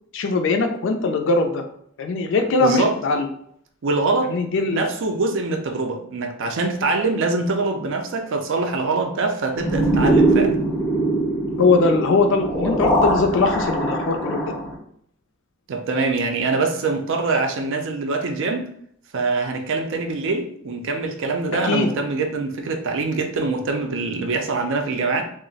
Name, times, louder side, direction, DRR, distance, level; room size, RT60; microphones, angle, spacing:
voice 1, 0.1-1.6 2.0-3.3 4.3-4.8 11.6-14.4 21.7-21.9, left 3 dB, 65° left, 5 dB, 0.4 m, -20 dB
voice 2, 2.6-3.0 3.8-4.4 4.7-10.6 15.7-18.7 19.1-25.2, right 3 dB, 65° right, 5 dB, 0.4 m, -24 dB
sound 1, 9.6-14.7, right 1 dB, 5° left, 0.5 m, -21 dB
2.4 x 2.0 x 3.8 m, 0.66 s
head